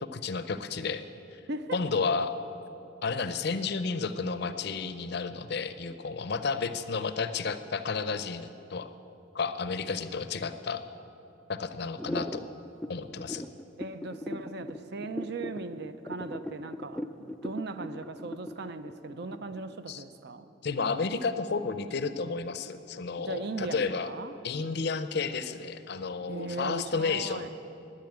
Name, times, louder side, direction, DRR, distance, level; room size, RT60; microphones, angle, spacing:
voice 1, 0.0-1.0 1.3-1.4 1.7-2.4 3.0-8.9 9.3-10.8 11.5-12.4 12.9-13.4 19.9-20.0 20.6-24.1 24.4-27.5, left 4 dB, 55° left, 11 dB, 0.6 m, -32 dB
sound 1, 11.9-19.8, left 1 dB, 5° left, 0.3 m, -38 dB
voice 2, 13.8-20.5 23.2-24.4 26.3-27.5, right 3 dB, 55° right, 11 dB, 0.5 m, -38 dB
10.5 x 9.5 x 9.0 m, 2.9 s
head